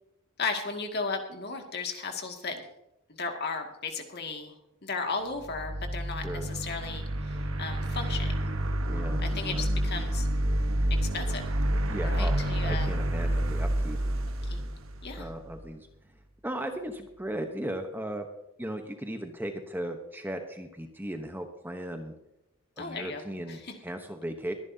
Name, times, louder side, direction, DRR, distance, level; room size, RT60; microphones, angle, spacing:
voice 1, 0.4-2.6 3.1-4.5 4.8-8.4 9.2-10.3 10.9-11.4 12.0-12.9 14.4-14.6 15.0-15.3 22.8-23.2 23.5-23.7, left 4 dB, 45° left, 3 dB, 2.1 m, -35 dB
sound 1, 5.4-15.6, right 1 dB, 60° right, 1.2 m, -29 dB
voice 2, 8.9-9.2 9.5-9.6 11.9-12.4 12.6-14.0 15.2-15.9 16.4-18.3 18.6-22.1 22.8-24.5, right 1 dB, 10° right, 5 dB, 0.9 m, -36 dB
22.5 x 10.5 x 2.8 m, 0.88 s
head